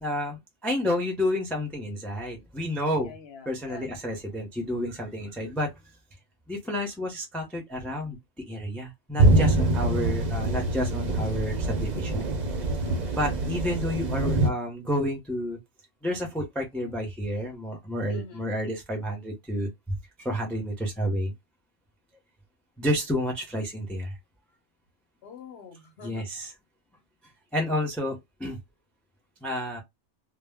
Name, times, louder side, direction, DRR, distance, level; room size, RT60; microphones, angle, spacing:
voice 1, 0.0-3.1 3.5-5.7 6.5-8.2 8.5-12.3 13.1-15.6 16.0-21.3 22.8-24.1 26.0-26.5 27.5-28.6 29.4-29.8, left 1 dB, ahead, 0.5 m, -30 dB
voice 2, 3.0-3.9 12.8-13.3 18.1-18.5 25.2-26.3, left 5 dB, 60° left, 0.9 m, -46 dB
sound 1, 9.2-14.5, right 2 dB, 50° right, 0.6 m, -24 dB
2.2 x 2.1 x 3.4 m
omnidirectional pair, 1.3 m